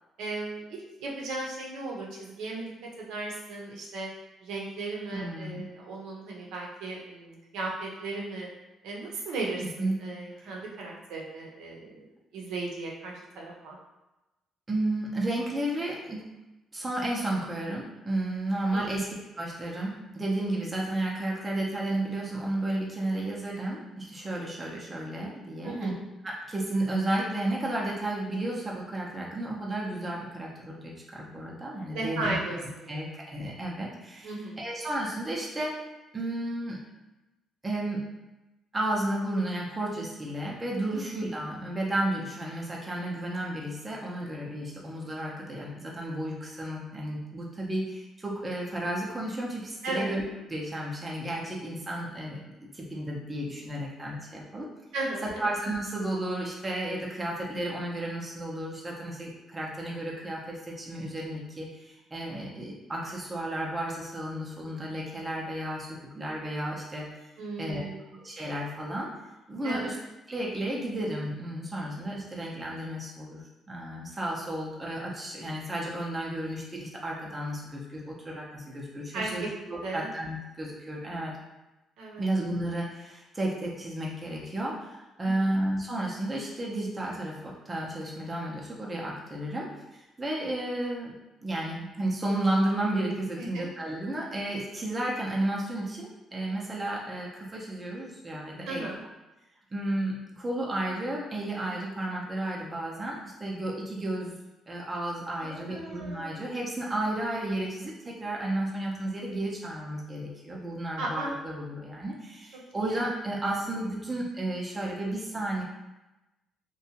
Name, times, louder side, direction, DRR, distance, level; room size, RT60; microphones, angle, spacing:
voice 1, 0.2-2.7 3.0-4.1 4.4-8.5 8.8-13.8 18.7-18.9 25.6-26.1 31.9-33.0 34.2-34.6 49.8-50.1 54.9-55.5 67.4-68.2 69.6-69.9 79.1-79.3 79.8-80.1 82.0-82.3 85.2-85.3 93.4-93.6 98.7-99.0 105.4-106.4 111.0-111.4 112.8-113.0, right 2 dB, 90° right, -3 dB, 0.6 m, -36 dB
voice 2, 5.1-5.7 9.6-10.0 14.7-16.3 16.7-19.1 19.4-25.9 26.2-32.4 32.9-35.8 36.1-36.8 37.6-38.0 38.7-50.2 50.5-54.7 55.4-67.1 67.6-67.9 68.1-69.1 69.5-70.0 70.3-81.4 82.2-89.7 90.2-91.1 91.4-98.9 99.7-104.3 104.7-115.6, right 1 dB, 20° right, -3 dB, 0.5 m, -32 dB
2.7 x 2.2 x 2.8 m, 1.0 s
cardioid pair, 125°, 0 cm